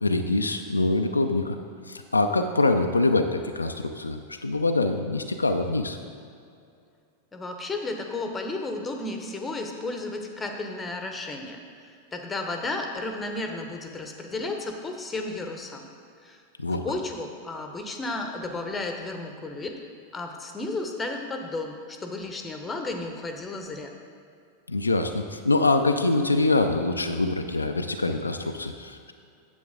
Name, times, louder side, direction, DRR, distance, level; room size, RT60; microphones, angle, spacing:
voice 1, 0.0-1.6 1.9-6.0 16.6-16.8 24.7-29.1, left 2 dB, 80° left, 5 dB, 0.4 m, -24 dB
voice 2, 7.3-11.6 11.9-15.9 16.2-16.4 16.8-19.8 20.1-23.9, left 2 dB, 15° left, 4 dB, 0.9 m, -33 dB
9.4 x 7.9 x 3.7 m, 2.4 s
figure-of-eight pair, 90°, 0 cm